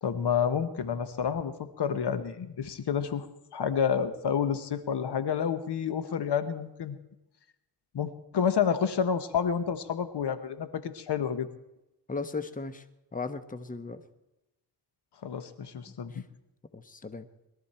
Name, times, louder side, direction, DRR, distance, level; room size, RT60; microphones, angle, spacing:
voice 1, 0.0-3.3 3.5-7.0 7.9-11.5 15.2-16.2, left 7 dB, 60° left, 11 dB, 1.4 m, -29 dB
voice 2, 12.1-12.8 13.1-14.0 16.1-16.2 16.7-17.3, left 4 dB, 20° left, 11 dB, 1.2 m, -36 dB
22.0 x 13.5 x 4.4 m, 0.92 s
cardioid pair, 80°, 44 cm